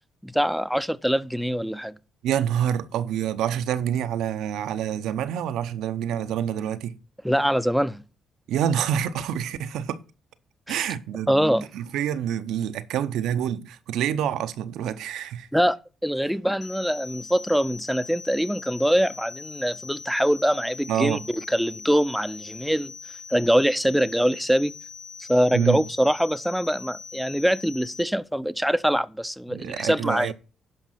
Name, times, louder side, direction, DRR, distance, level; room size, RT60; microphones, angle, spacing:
voice 1, 0.2-1.9 7.2-8.0 10.7-10.9 11.3-11.7 15.5-15.8 16.0-22.9 23.3-24.7 25.2-30.3, equal, ahead, 0.6 m, -23 dB
voice 2, 2.2-7.0 8.5-10.0 10.7-11.4 11.7-15.5 20.9-21.3 25.5-25.8 29.5-30.3, right 9 dB, 85° right, 0.7 m, -27 dB
sound 1, 16.6-28.0, left 5 dB, 65° left, 1.3 m, -42 dB
11.0 x 5.4 x 5.7 m
cardioid pair, 90°, 0 cm